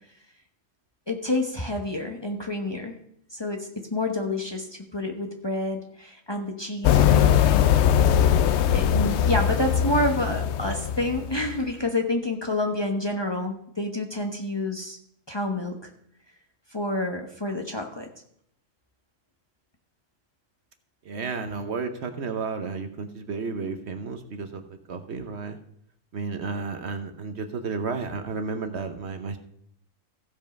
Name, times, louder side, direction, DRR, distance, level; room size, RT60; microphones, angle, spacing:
voice 1, 1.1-3.0 3.3-7.7 8.7-15.0 15.3-15.8 16.7-18.1, left 1 dB, 20° left, 2 dB, 1.0 m, -28 dB
sound 1, 6.8-11.6, left 9 dB, 65° left, 0.8 m, -21 dB
voice 2, 21.0-24.6 24.9-25.6 26.1-29.4, right 4 dB, 60° right, 7 dB, 1.1 m, -32 dB
15.0 x 5.4 x 5.3 m, 0.70 s
omnidirectional pair, 1.3 m